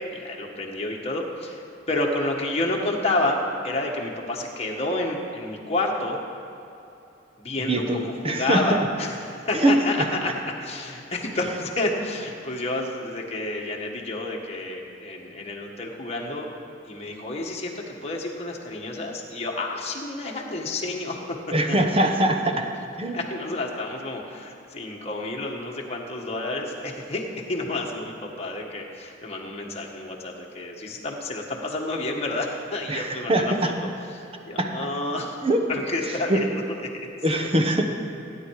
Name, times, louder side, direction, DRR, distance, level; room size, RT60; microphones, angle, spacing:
voice 1, 0.1-6.2 7.4-10.3 10.6-16.5 16.9-21.2 23.1-33.7 34.1-35.4 35.7-36.6 36.9-37.1, left 2 dB, 35° left, -1 dB, 1.6 m, -30 dB
voice 2, 7.7-8.0 8.2-8.8 9.5-9.7 21.5-22.7 23.0-23.2 32.9-33.7 34.6-34.7 35.4-35.6 36.3-36.4 37.2-37.8, right 1 dB, 30° right, 4 dB, 1.0 m, -22 dB
16.5 x 10.0 x 4.8 m, 2.9 s
head